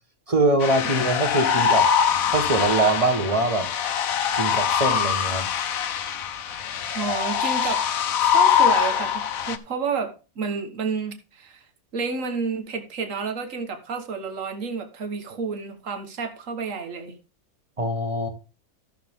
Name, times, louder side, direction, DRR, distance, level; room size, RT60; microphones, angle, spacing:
voice 1, 0.3-1.9 2.3-3.7 4.3-5.5 17.8-18.3, right 2 dB, 25° right, 6 dB, 1.5 m, -23 dB
sound 1, 0.6-9.6, left 8 dB, 75° left, 1.3 m, -23 dB
voice 2, 7.0-7.8 8.2-11.6 11.9-17.1, right 5 dB, 65° right, 6 dB, 1.7 m, -30 dB
14.0 x 6.9 x 3.7 m, 0.34 s
omnidirectional pair, 1.5 m